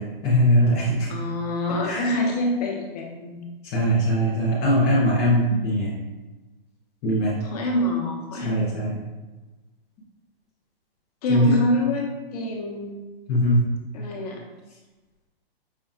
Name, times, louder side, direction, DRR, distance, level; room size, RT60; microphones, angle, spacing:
voice 1, 0.0-1.1 1.8-2.0 3.6-5.9 7.0-7.4 8.4-9.0 11.3-11.6 13.3-13.7, equal, 10° left, -7 dB, 0.4 m, -21 dB
voice 2, 1.1-3.4 7.4-8.9 11.2-13.0 13.9-14.4, left 1 dB, 40° left, 0 dB, 0.9 m, -26 dB
5.4 x 2.3 x 3.5 m, 1.2 s
hypercardioid pair, 150°, 30 cm